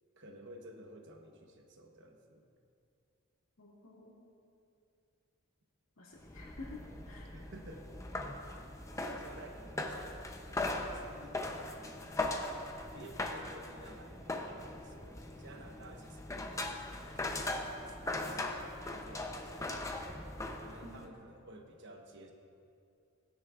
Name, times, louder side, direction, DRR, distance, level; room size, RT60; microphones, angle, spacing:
voice 1, 0.2-2.5 7.3-7.9 9.0-11.4 12.9-19.8 20.6-22.3, right 1 dB, 55° right, 3 dB, 1.1 m, -54 dB
voice 2, 3.6-4.1 6.0-7.3 20.8-20.9, left 3 dB, 70° left, -5 dB, 2.4 m, -50 dB
sound 1, 6.2-21.1, left 2 dB, 15° left, 0.6 m, -40 dB
18.0 x 9.7 x 2.5 m, 2.6 s
head